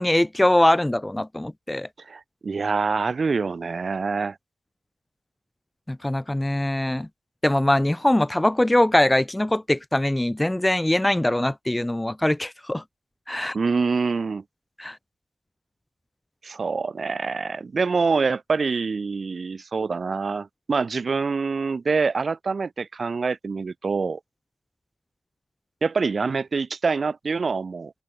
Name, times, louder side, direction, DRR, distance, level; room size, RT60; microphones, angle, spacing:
voice 1, 0.0-1.9 5.9-7.1 7.4-12.8 13.3-13.6 14.8-15.0, left 1 dB, 10° left, 2.0 m, -22 dB
voice 2, 2.1-4.4 13.3-14.4 16.4-24.2 25.8-27.9, right 4 dB, 45° right, 3.4 m, -25 dB
open air
cardioid pair, 75°, 0 cm